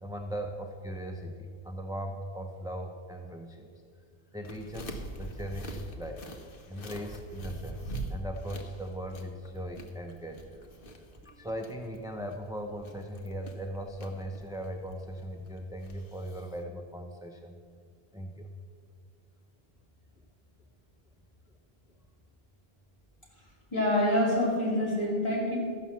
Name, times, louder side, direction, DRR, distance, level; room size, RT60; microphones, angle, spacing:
voice 1, 0.0-3.7 4.3-6.3 6.7-10.7 11.2-17.6 18.1-18.5, equal, 5° right, 3 dB, 0.5 m, -39 dB
sound 1, 4.4-16.6, right 1 dB, 60° left, 1.2 m, -44 dB
voice 2, 23.7-25.6, left 1 dB, 30° left, -5 dB, 3.1 m, -26 dB
13.5 x 5.8 x 7.3 m, 2.1 s
omnidirectional pair, 1.0 m